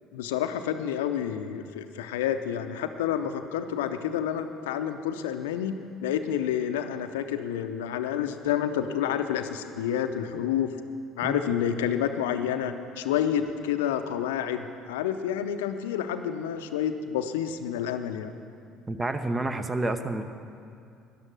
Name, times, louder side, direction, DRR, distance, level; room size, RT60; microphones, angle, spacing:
voice 1, 0.1-10.7 11.2-18.3, left 9 dB, 75° left, 8 dB, 0.6 m, -29 dB
voice 2, 18.9-20.2, right 2 dB, 20° right, 10 dB, 0.8 m, -29 dB
12.5 x 10.5 x 6.2 m, 2.5 s
hypercardioid pair, 60°, 0 cm